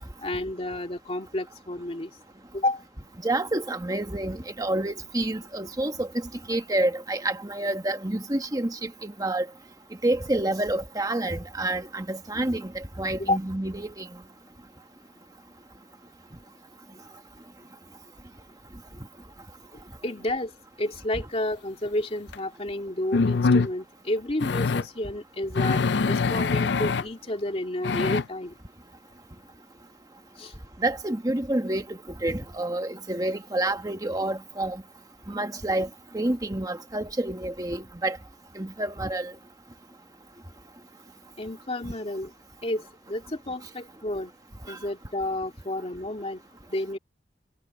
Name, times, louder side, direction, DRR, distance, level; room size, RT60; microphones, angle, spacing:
voice 1, 0.2-2.1 2.5-2.8 13.2-13.4 19.7-20.5 20.8-25.8 26.1-28.5 30.4-30.5 41.4-42.3 42.6-44.3 44.7-46.4 46.7-47.0, left 1 dB, 35° left, 2.4 m, -30 dB
voice 2, 3.2-9.5 10.0-14.1 30.8-34.8 35.3-35.9 36.1-38.2 38.5-39.3 44.7-44.8, right 1 dB, 20° right, 1.3 m, -28 dB
sound 1, 22.3-22.4 23.1-23.7 24.4-24.9 25.5-27.0 27.8-28.2, left 4 dB, 80° left, 0.5 m, -23 dB
head